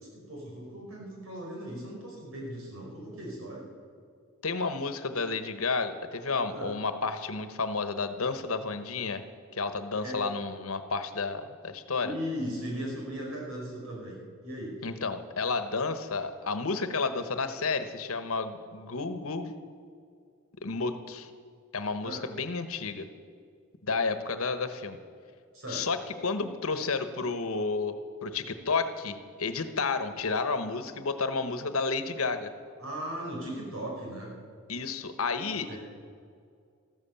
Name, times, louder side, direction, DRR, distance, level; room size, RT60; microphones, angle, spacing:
voice 1, 0.1-3.6 6.5-6.7 10.0-10.3 12.0-14.2 14.4-14.8 22.0-22.2 25.5-25.8 32.8-34.3 35.7-35.8, equal, 75° right, -2 dB, 5.3 m, -37 dB
voice 2, 4.4-9.2 9.5-12.1 14.8-19.5 20.6-21.3 21.7-23.1 23.8-25.0 25.7-28.0 28.2-32.5 34.7-35.8, left 4 dB, 85° left, 10 dB, 1.1 m, -31 dB
14.0 x 13.0 x 7.0 m, 2.2 s
head